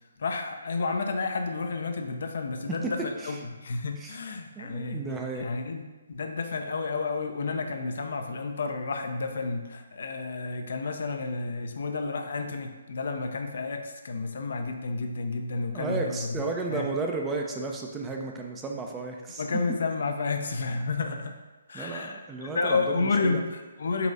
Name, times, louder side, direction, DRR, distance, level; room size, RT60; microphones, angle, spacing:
voice 1, 0.2-5.0 5.4-16.9 19.4-21.4 21.7-24.1, left 3 dB, 60° left, 5 dB, 0.4 m, -31 dB
voice 2, 4.6-5.5 15.7-19.4 21.7-23.4, right 3 dB, 10° right, 1 dB, 0.4 m, -33 dB
4.1 x 2.4 x 3.9 m, 1.2 s
figure-of-eight pair, 145°, 0 cm